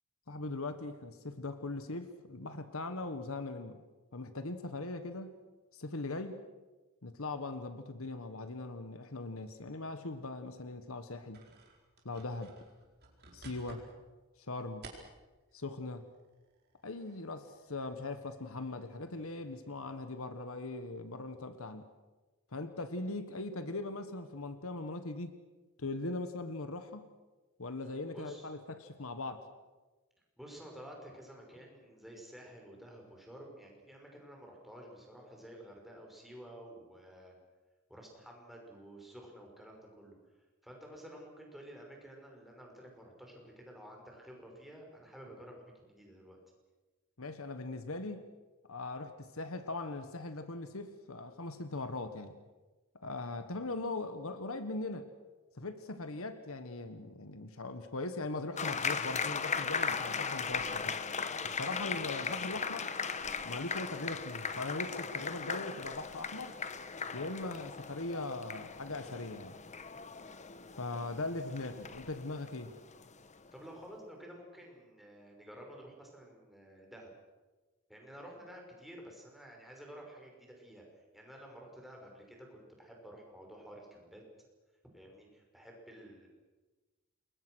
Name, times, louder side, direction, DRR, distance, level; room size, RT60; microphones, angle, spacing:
voice 1, 0.3-3.8 4.1-5.4 5.7-6.4 7.0-11.4 12.0-12.5 13.3-13.8 14.5-14.9 15.5-16.0 16.8-21.9 22.5-25.3 25.8-27.0 27.6-29.4 47.2-48.3 48.7-52.4 53.0-55.1 55.6-60.9 61.4-62.9 63.4-66.6 67.1-69.6 70.8-72.7, left 2 dB, 70° left, 10 dB, 1.5 m, -40 dB
sound 1, 11.3-15.5 16.0-19.8, right 3 dB, 50° right, 4.7 m, -57 dB
voice 2, 28.1-28.5 30.4-37.3 37.9-40.1 40.6-46.4 73.5-77.1 77.9-80.8 81.1-84.2 84.9-86.3, equal, ahead, 0 dB, 5.8 m, -51 dB
sound 2, 58.6-73.5, left 5 dB, 35° left, 1.1 m, -38 dB
28.0 x 22.0 x 6.3 m, 1.2 s
head